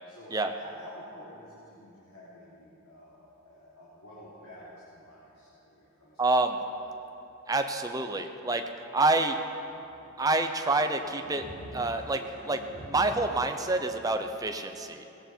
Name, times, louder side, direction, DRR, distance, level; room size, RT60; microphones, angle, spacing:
voice 1, 0.1-6.2, equal, 90° left, -9 dB, 3.6 m, -50 dB
voice 2, 6.2-6.6 7.5-8.6 8.9-9.4 10.2-11.5 11.7-15.1, right 2 dB, 15° right, 6 dB, 0.8 m, -27 dB
sound 1, 7.2-7.3 7.6-7.7 8.0-14.0, equal, 30° left, 3.6 m, -48 dB
19.0 x 16.0 x 4.6 m, 2.9 s
head